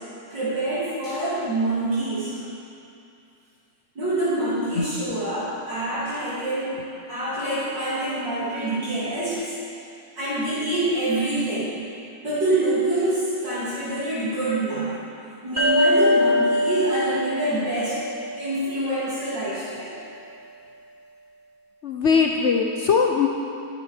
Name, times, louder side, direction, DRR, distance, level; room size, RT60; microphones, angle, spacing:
voice 1, 0.3-2.4 4.0-6.7 7.1-9.5 10.2-11.8 12.2-15.0 15.4-18.0 18.4-20.0, right 1 dB, 55° right, -11 dB, 3.6 m, -26 dB
sound 1, 15.6-19.0, left 1 dB, 10° right, 2.2 m, -23 dB
voice 2, 21.8-23.3, left 5 dB, 90° left, 2 dB, 0.6 m, -20 dB
23.0 x 10.0 x 4.4 m, 2.6 s
omnidirectional pair, 2.3 m